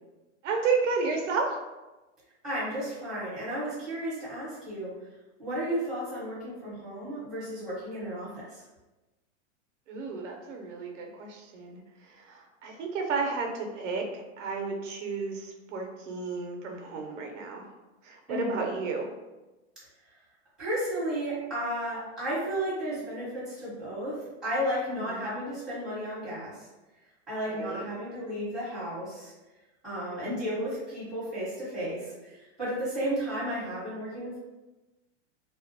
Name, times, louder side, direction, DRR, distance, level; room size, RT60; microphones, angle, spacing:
voice 1, 0.4-1.6 9.9-17.7 18.0-19.1 24.9-25.3 27.5-27.9 29.9-30.4, right 4 dB, 90° right, 2 dB, 0.6 m, -32 dB
voice 2, 2.4-4.9 5.4-8.6 18.3-18.7 20.6-24.1 24.4-26.5 27.3-29.3 29.8-34.4, equal, ahead, -10 dB, 0.9 m, -33 dB
2.3 x 2.0 x 2.6 m, 1.1 s
supercardioid pair, 160°, 36 cm